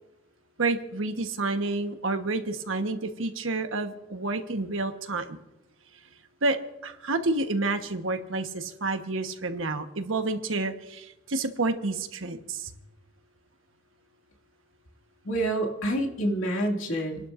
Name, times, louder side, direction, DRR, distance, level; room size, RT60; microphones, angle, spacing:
voice 1, 0.6-5.4 6.4-6.6 6.8-12.7, right 3 dB, 75° right, 6 dB, 1.2 m, -29 dB
voice 2, 15.2-17.3, right 1 dB, 75° left, 1 dB, 2.4 m, -27 dB
29.5 x 11.5 x 2.6 m, 0.95 s
head